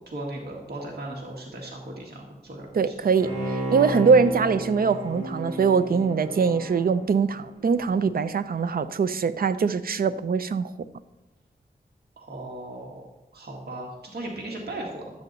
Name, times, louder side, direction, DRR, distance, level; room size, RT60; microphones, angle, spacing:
voice 1, 0.1-3.0 12.2-13.0 13.3-15.2, right 1 dB, 85° right, -1 dB, 1.6 m, -37 dB
voice 2, 2.7-10.7, right 5 dB, 65° right, 12 dB, 0.5 m, -22 dB
Bowed string instrument, 3.2-7.8 8.2-8.3, right 1 dB, 40° right, 3.3 m, -33 dB
12.0 x 8.4 x 3.9 m, 1.0 s
wide cardioid pair, 105°, 16 cm